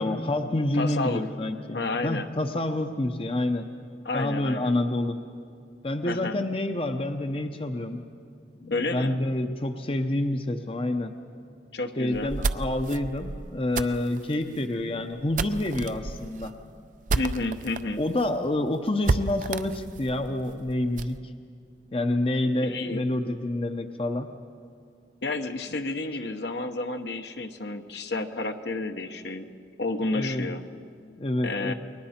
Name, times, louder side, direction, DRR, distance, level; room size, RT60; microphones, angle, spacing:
voice 1, 0.0-3.7 4.1-5.2 5.8-8.0 8.6-11.1 12.0-16.5 18.0-21.2 21.9-24.3 30.1-30.5 31.2-31.7, left 1 dB, 30° left, 7 dB, 0.7 m, -28 dB
voice 2, 0.7-1.2 1.7-2.3 4.0-4.7 6.0-6.4 8.7-9.2 11.7-12.4 17.1-18.0 22.6-23.0 25.2-29.5 29.8-30.6 31.4-31.7, left 2 dB, 70° left, 6 dB, 1.0 m, -30 dB
sound 1, 12.1-17.8 18.2-18.3 18.5-18.6 19.0-21.2, right 3 dB, 45° right, 0.5 m, -31 dB
29.0 x 22.0 x 4.3 m, 2.4 s
head